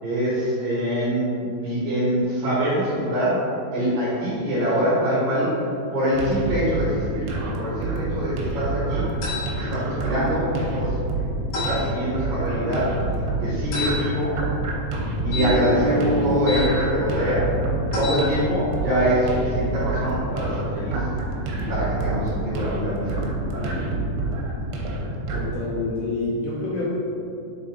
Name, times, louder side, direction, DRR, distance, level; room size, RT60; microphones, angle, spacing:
voice 1, 0.0-5.6 5.9-7.2 7.6-9.1 9.6-11.0 11.7-12.9 13.4-14.4 15.2-17.5 17.9-21.0 21.6-23.7, equal, 60° right, -10 dB, 2.7 m, -24 dB
sound 1, 6.1-25.5, right 2 dB, 85° right, 3.1 m, -28 dB
sound 2, 9.2-9.5 11.5-11.8 13.7-13.9 15.3-16.6 17.9-18.2, equal, 60° left, 3.1 m, -26 dB
voice 2, 25.3-26.8, left 2 dB, 80° left, -6 dB, 2.8 m, -27 dB
7.2 x 4.1 x 3.7 m, 2.7 s
omnidirectional pair, 5.6 m